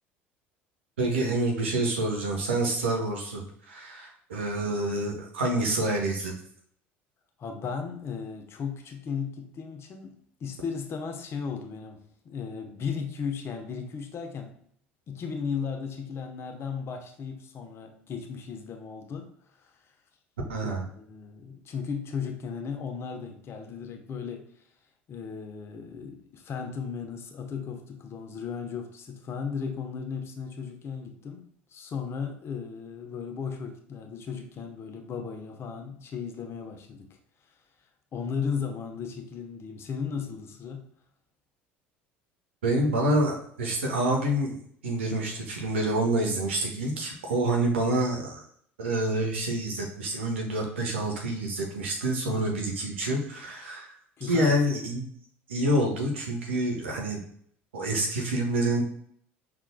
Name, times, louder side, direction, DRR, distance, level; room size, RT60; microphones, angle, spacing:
voice 1, 1.0-6.4 20.5-20.8 42.6-44.6 44.8-48.4 48.8-53.9 54.3-55.0 55.5-57.2 57.7-58.8, right 1 dB, 80° right, 1 dB, 1.0 m, -27 dB
voice 2, 7.4-14.6 15.1-19.9 20.6-24.6 25.1-37.2 37.4-37.5 38.1-40.9 52.2-52.5 54.2-54.6, left 6 dB, 40° left, 4 dB, 0.9 m, -36 dB
5.8 x 3.6 x 2.2 m, 0.65 s
hypercardioid pair, 65°, 6 cm